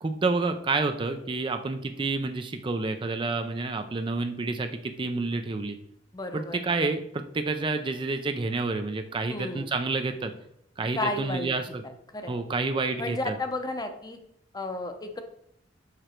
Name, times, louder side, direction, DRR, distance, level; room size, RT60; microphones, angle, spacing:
voice 1, 0.0-5.8 6.3-10.3 10.8-11.8 12.3-13.4, right 3 dB, 25° right, 7 dB, 0.4 m, -29 dB
voice 2, 6.1-6.6 9.3-9.7 10.9-11.5 12.1-12.3 13.0-14.2 14.5-15.2, left 2 dB, 20° left, 6 dB, 0.7 m, -32 dB
6.0 x 5.0 x 4.4 m, 0.75 s
head